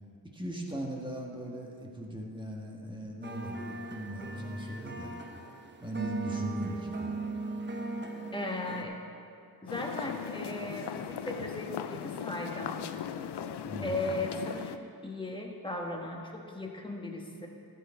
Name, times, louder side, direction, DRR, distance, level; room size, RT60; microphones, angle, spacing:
voice 1, 0.3-5.1 5.8-7.1 13.6-14.1, equal, 10° right, 0 dB, 1.6 m, -39 dB
sound 1, 3.2-8.8, right 3 dB, 25° right, 0.9 m, -37 dB
voice 2, 8.3-9.0 9.6-12.8 13.8-17.5, left 1 dB, 10° left, 0 dB, 1.5 m, -37 dB
sound 2, 9.7-14.8, left 8 dB, 90° left, 0.5 m, -38 dB
13.5 x 8.9 x 4.4 m, 2.5 s
wide cardioid pair, 85°, 39 cm